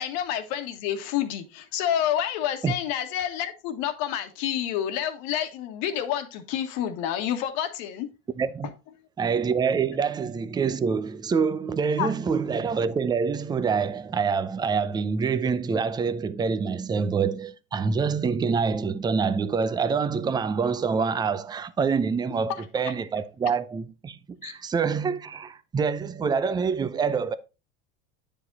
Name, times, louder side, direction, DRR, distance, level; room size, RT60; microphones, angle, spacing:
voice 1, 0.0-8.1 12.0-12.1 24.4-24.5, left 10 dB, 60° left, 1.6 m, -29 dB
voice 2, 8.4-8.7 9.2-27.3, right 5 dB, 15° right, 0.5 m, -26 dB
9.6 x 5.0 x 4.0 m
supercardioid pair, 125°, 30 cm